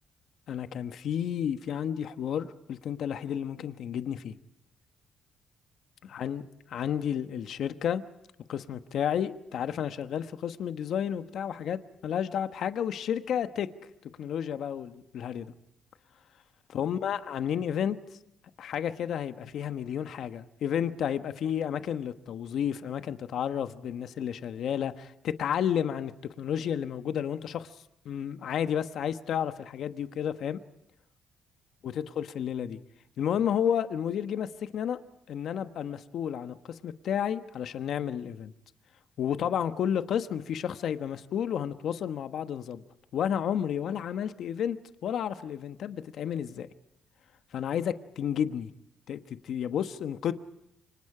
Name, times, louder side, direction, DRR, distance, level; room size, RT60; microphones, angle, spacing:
voice 1, 0.5-4.3 6.1-6.4 6.7-8.0 8.5-13.7 14.2-15.5 16.7-18.0 18.6-27.8 28.0-30.6 31.8-32.8 33.2-35.0 35.3-38.5 39.2-42.8 43.1-46.7 47.5-48.7 49.1-50.3, left 9 dB, 70° left, 10 dB, 1.2 m, -31 dB
28.5 x 25.0 x 4.9 m, 0.81 s
cardioid pair, 90°, 0 cm